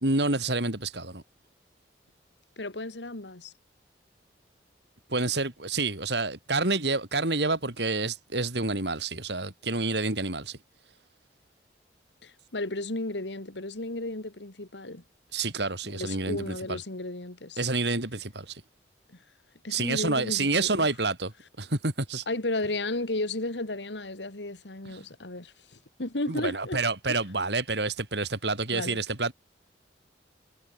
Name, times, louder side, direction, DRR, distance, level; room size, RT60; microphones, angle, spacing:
voice 1, 0.0-1.2 5.1-10.6 15.3-16.8 17.6-18.6 19.7-21.3 21.6-22.2 24.9-25.0 26.3-29.3, right 3 dB, 70° right, 4.0 m, -28 dB
voice 2, 2.6-3.5 12.2-15.0 15.9-17.6 19.1-19.2 19.6-20.9 22.3-25.5 26.0-26.8 27.1-27.2 28.7-29.0, left 2 dB, 85° left, 2.3 m, -34 dB
head